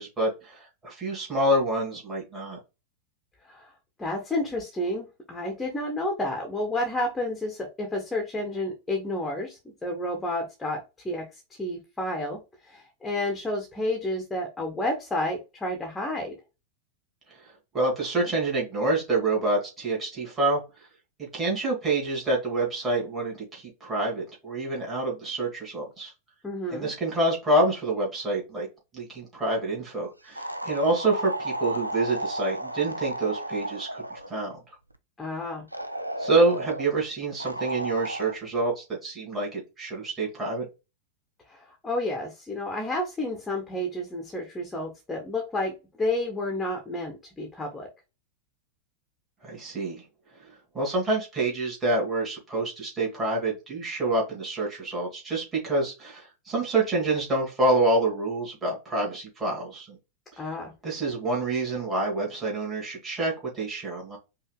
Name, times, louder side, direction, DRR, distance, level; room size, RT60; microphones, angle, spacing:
voice 1, 0.0-2.6 17.7-20.6 21.2-26.1 26.7-28.7 28.9-34.6 36.2-40.7 49.4-50.0 50.7-60.0 60.3-60.4 60.8-64.2, right 2 dB, 20° right, -3 dB, 2.6 m, -27 dB
voice 2, 4.0-16.4 26.4-26.9 35.2-35.6 41.5-47.9 60.4-60.7, left 1 dB, 10° left, 2 dB, 1.2 m, -31 dB
sound 1, 30.4-34.3 35.7-36.9 37.4-38.3, right 1 dB, 85° right, 0.4 m, -33 dB
5.5 x 2.8 x 2.3 m, 0.26 s
figure-of-eight pair, 90°, 0 cm